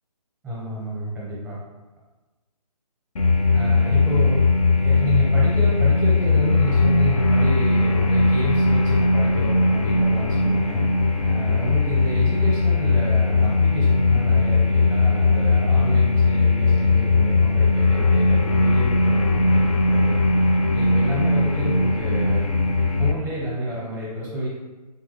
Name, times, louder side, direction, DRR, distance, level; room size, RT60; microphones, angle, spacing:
voice 1, 0.4-1.6 3.5-4.4 4.7-10.8 11.2-20.2 20.7-22.5 23.0-24.5, equal, 5° right, -7 dB, 0.6 m, -29 dB
sound 1, 3.2-23.1, left 3 dB, 60° left, 0.4 m, -19 dB
3.6 x 2.2 x 3.2 m, 1.2 s
hypercardioid pair, 160°, 20 cm